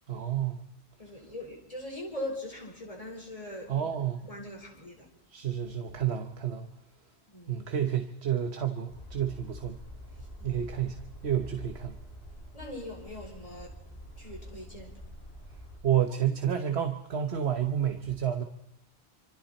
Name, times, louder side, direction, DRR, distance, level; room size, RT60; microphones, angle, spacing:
voice 1, 0.1-0.6 3.7-4.2 5.3-6.7 7.5-9.8 10.4-12.0 15.8-18.4, right 9 dB, 80° right, 6 dB, 1.4 m, -30 dB
voice 2, 1.0-3.9 4.2-5.1 7.3-7.6 10.4-10.6 12.5-13.7 14.2-14.9, left 1 dB, 35° left, -1 dB, 5.0 m, -41 dB
sound 1, 8.9-15.8, equal, 65° left, 7.0 m, -46 dB
26.0 x 25.5 x 4.3 m, 0.74 s
omnidirectional pair, 1.1 m